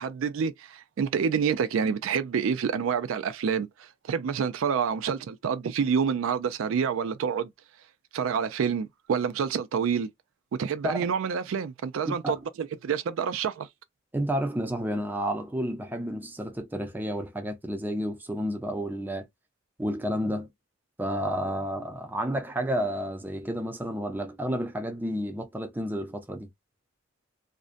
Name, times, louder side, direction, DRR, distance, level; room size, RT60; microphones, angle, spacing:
voice 1, 0.0-7.5 8.1-10.1 10.6-12.4 12.8-13.7, right 6 dB, 80° right, 0.4 m, -28 dB
voice 2, 12.1-12.4 14.1-19.2 19.8-20.5 21.0-26.5, equal, 10° right, 0.4 m, -31 dB
2.5 x 2.1 x 2.4 m
head